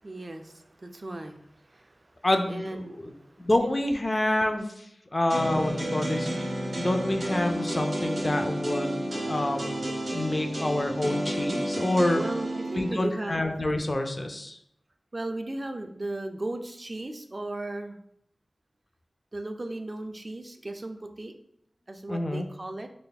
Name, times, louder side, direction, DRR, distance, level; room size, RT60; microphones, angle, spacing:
voice 1, 0.0-3.5 6.7-6.9 12.1-13.5 15.1-18.0 19.3-21.3 21.9-22.9, right 2 dB, 40° right, 6 dB, 0.3 m, -36 dB
voice 2, 2.2-3.1 3.4-4.9 5.1-6.3 6.8-9.9 10.1-12.2 12.8-14.6 22.1-22.5, left 1 dB, 40° left, 5 dB, 0.4 m, -27 dB
sound 1, 5.3-12.9, right 1 dB, 75° right, 1.2 m, -31 dB
4.1 x 3.1 x 2.2 m, 0.74 s
wide cardioid pair, 60°, 0 cm